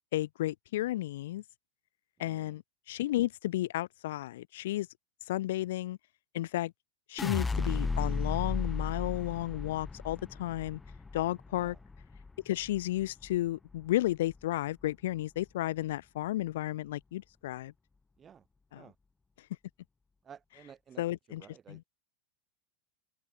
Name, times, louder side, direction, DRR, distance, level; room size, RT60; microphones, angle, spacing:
voice 1, 0.1-1.4 2.2-2.6 2.9-4.9 5.3-6.0 6.3-6.7 7.1-10.8 11.1-11.8 12.4-17.7 18.7-18.8 21.0-21.8, left 15 dB, 70° left, 2.8 m, -33 dB
voice 2, 2.2-2.6 11.6-11.8 18.2-18.4 18.7-18.9 20.2-21.0 21.3-21.9, right 8 dB, 15° right, 4.2 m, -54 dB
sound 1, 7.2-13.4 13.7-14.3, left 4 dB, 10° left, 1.6 m, -35 dB
supercardioid pair, 175°, 0 cm